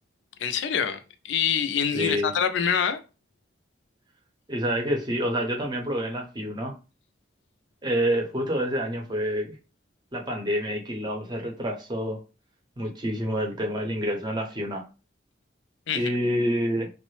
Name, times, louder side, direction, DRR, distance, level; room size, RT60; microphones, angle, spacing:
voice 1, 0.4-3.0 15.9-16.0, left 7 dB, 75° left, 0.4 m, -25 dB
voice 2, 1.9-2.4 4.5-6.7 7.8-9.5 10.1-12.2 12.8-14.8 15.9-16.9, equal, 25° right, 0.6 m, -27 dB
3.2 x 2.0 x 3.1 m
head